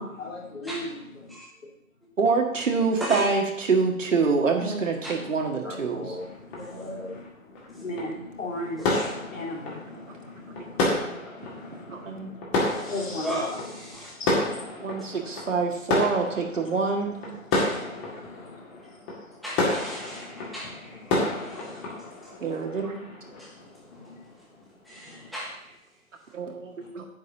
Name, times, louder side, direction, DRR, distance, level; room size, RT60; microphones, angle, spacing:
voice 1, 0.0-1.3 4.6-4.8 5.1-5.3 5.6-7.3 7.7-11.1 11.4-12.4 12.8-13.6 13.9-14.7 17.6-18.6 20.1-21.3 21.6-22.0 23.4-23.5 23.9-24.2 25.1-25.3, left 1 dB, 65° left, -1 dB, 3.2 m, -38 dB
voice 2, 2.2-6.2 11.9-12.3 14.8-17.2 22.4-23.1 26.3-27.1, right 4 dB, 60° right, 2 dB, 1.9 m, -26 dB
sound 1, 6.1-24.7 24.9-25.1, left 2 dB, 20° left, 1.9 m, -31 dB
voice 3, 8.8-9.1 12.6-12.9 13.2-14.1 17.5-18.0 19.4-22.3 23.4-23.5 24.8-25.7, equal, ahead, -5 dB, 1.2 m, -37 dB
9.6 x 4.8 x 7.2 m, 0.77 s
figure-of-eight pair, 145°, 43 cm